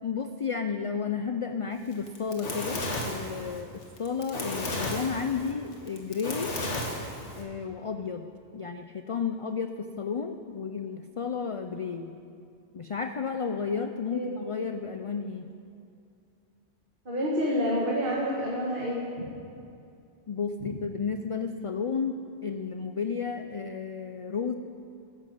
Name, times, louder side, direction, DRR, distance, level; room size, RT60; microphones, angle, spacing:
voice 1, 0.0-3.7 4.0-6.6 7.3-12.1 12.7-15.5 20.3-24.5, left 5 dB, 55° left, 7 dB, 0.3 m, -32 dB
Fire, 1.9-7.4, left 1 dB, 70° left, 2.1 m, -33 dB
voice 2, 17.1-19.3, equal, 45° right, -3 dB, 1.8 m, -28 dB
13.0 x 10.5 x 7.8 m, 2.5 s
omnidirectional pair, 1.2 m